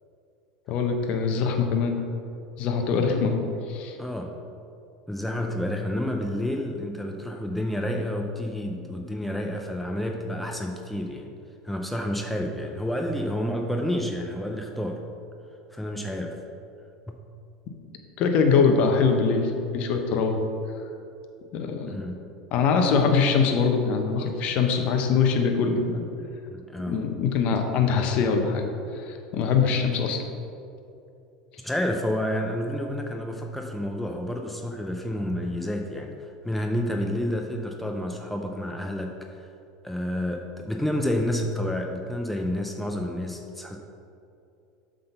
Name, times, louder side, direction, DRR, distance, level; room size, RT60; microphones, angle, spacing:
voice 1, 0.7-2.0 2.6-3.4 3.7-4.0 18.2-20.3 21.5-21.9 22.5-26.1 26.9-28.6 29.1-30.2, left 5 dB, 50° left, 4 dB, 0.9 m, -23 dB
voice 2, 4.0-4.3 5.1-11.3 11.6-15.0 15.7-16.4 17.1-17.2 21.8-22.2 26.5-27.0 31.6-39.5 39.8-43.8, left 1 dB, 5° left, 2 dB, 0.6 m, -29 dB
7.7 x 3.9 x 5.5 m, 2.6 s
hypercardioid pair, 90°, 3 cm